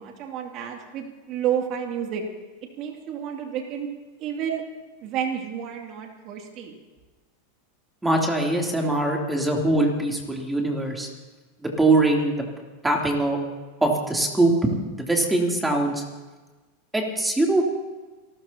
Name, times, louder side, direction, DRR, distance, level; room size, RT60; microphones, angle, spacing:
voice 1, 0.0-2.2 2.8-3.9 4.2-4.6 5.0-6.7, right 9 dB, 50° right, 2 dB, 2.6 m, -30 dB
voice 2, 8.0-11.1 11.6-12.4 12.8-13.4 13.8-14.5 15.0-16.0 16.9-17.6, right 2 dB, 10° right, 0 dB, 3.2 m, -22 dB
29.5 x 13.5 x 2.9 m, 1.2 s
hypercardioid pair, 100°, 0 cm